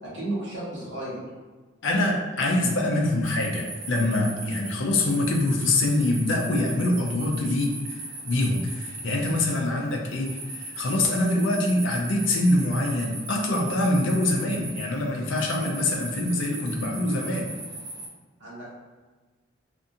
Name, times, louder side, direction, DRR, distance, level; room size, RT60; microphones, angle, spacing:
voice 1, 0.0-1.2 18.4-18.7, right 1 dB, 65° right, -8 dB, 1.2 m, -33 dB
voice 2, 1.8-8.0 8.3-17.5, left 1 dB, 75° left, 0 dB, 0.5 m, -24 dB
sound 1, 3.2-18.1, right 2 dB, 50° right, 0.7 m, -38 dB
2.5 x 2.5 x 2.6 m, 1.3 s
head